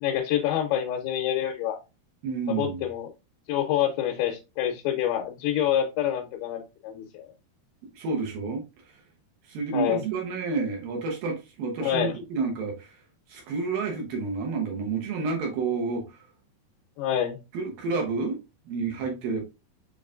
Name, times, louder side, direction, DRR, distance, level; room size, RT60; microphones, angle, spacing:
voice 1, 0.0-1.8 2.5-3.1 3.5-7.3 9.7-10.0 11.8-12.1 17.0-17.4, left 10 dB, 80° left, 2.5 m, -27 dB
voice 2, 2.2-2.8 8.0-8.6 9.5-13.0 13.3-16.2 17.5-18.4 18.7-19.4, right 4 dB, 70° right, 2.4 m, -29 dB
7.2 x 3.1 x 2.4 m
omnidirectional pair, 4.6 m